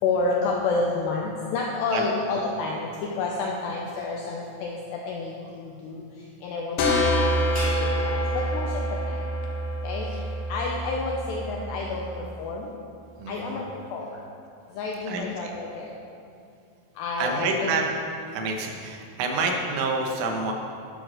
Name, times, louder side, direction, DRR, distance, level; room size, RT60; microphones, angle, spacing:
voice 1, 0.0-6.0 6.4-9.2 9.8-12.7 13.3-13.6 13.9-14.2 14.7-15.9 17.0-17.8, left 3 dB, 90° left, -1 dB, 2.4 m, -30 dB
sound 1, 6.8-12.2, equal, 65° left, 2.8 m, -27 dB
sound 2, 7.5-10.1, right 1 dB, 5° right, 1.0 m, -36 dB
voice 2, 13.2-13.6 15.1-15.5 17.2-17.8 18.3-20.5, right 3 dB, 75° right, 2 dB, 3.5 m, -28 dB
11.5 x 8.1 x 6.4 m, 2.5 s
omnidirectional pair, 5.9 m